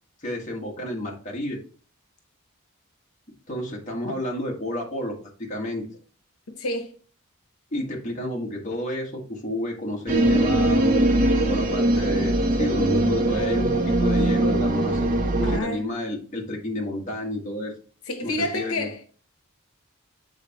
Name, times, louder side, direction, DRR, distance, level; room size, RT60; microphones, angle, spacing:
voice 1, 0.2-1.6 3.5-5.8 7.7-11.1 11.5-15.1 15.4-17.7 18.2-18.9, left 1 dB, 35° left, 1.6 m, -30 dB
voice 2, 6.6-6.9 15.4-15.8 18.1-19.0, left 1 dB, 85° left, 0.9 m, -29 dB
sound 1, 10.1-15.6, right 1 dB, 40° right, 0.7 m, -21 dB
7.9 x 4.0 x 3.0 m
head